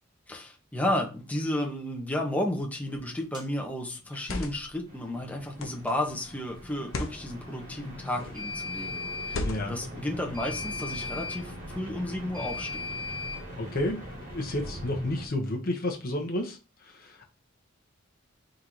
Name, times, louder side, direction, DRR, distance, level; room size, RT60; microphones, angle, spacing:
voice 1, 0.3-9.4 9.7-12.9, left 1 dB, 5° left, 0.8 m, -32 dB
sound 1, 2.9-3.2 4.0-4.8 5.6-5.9 6.8-7.2 8.1-8.5 9.3-9.9, left 2 dB, 80° left, 0.7 m, -36 dB
sound 2, 3.3-3.5 8.3-9.4 10.3-11.4 12.3-13.4, left 4 dB, 20° right, 0.9 m, -36 dB
sound 3, 4.9-15.3, equal, 40° right, 1.5 m, -42 dB
voice 2, 9.4-9.8 13.6-14.0 14.3-16.6 16.8-17.3, left 1 dB, 45° left, 0.8 m, -31 dB
3.8 x 2.6 x 4.5 m
head